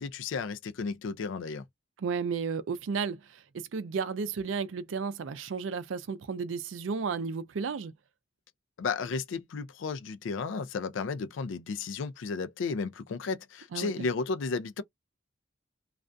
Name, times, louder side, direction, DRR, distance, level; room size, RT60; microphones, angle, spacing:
voice 1, 0.0-1.6 8.8-14.8, left 4 dB, 80° left, 0.4 m, -33 dB
voice 2, 2.0-7.9 13.7-13.9, right 5 dB, 90° right, 0.4 m, -33 dB
2.4 x 2.2 x 2.5 m
head